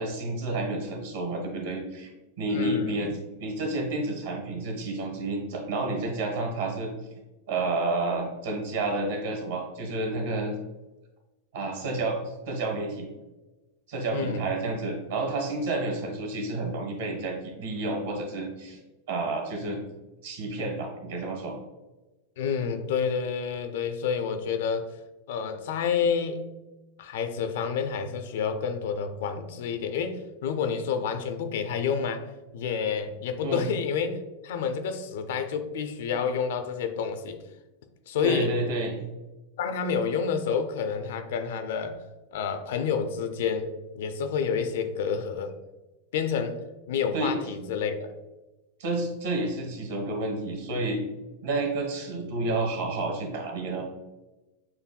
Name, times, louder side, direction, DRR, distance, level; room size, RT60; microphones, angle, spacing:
voice 1, 0.0-2.1 2.4-3.1 3.4-6.9 7.5-10.5 11.5-13.1 13.9-18.8 19.1-19.8 20.2-21.5 33.4-33.6 38.2-39.0 47.1-47.4 48.8-51.0 51.4-53.8, right 2 dB, 65° right, 2 dB, 1.2 m, -30 dB
voice 2, 2.5-3.0 14.1-14.4 22.4-24.9 25.3-26.5 27.0-34.2 34.4-37.4 38.1-38.5 39.6-42.0 42.3-43.7 43.9-45.6 46.1-46.6 46.9-48.1, left 6 dB, 55° left, 8 dB, 0.4 m, -29 dB
7.0 x 2.6 x 2.2 m, 1.1 s
figure-of-eight pair, 90°, 0 cm